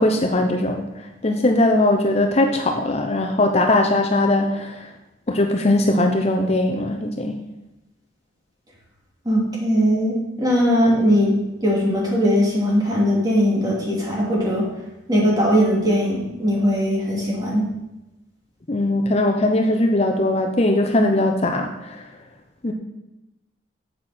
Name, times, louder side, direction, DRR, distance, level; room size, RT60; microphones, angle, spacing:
voice 1, 0.0-4.9 5.3-7.4 18.7-22.1 22.6-22.7, left 1 dB, 35° left, 3 dB, 0.7 m, -20 dB
voice 2, 9.2-14.7 15.1-17.7, equal, 20° right, -4 dB, 2.8 m, -20 dB
9.4 x 7.8 x 4.3 m, 0.96 s
head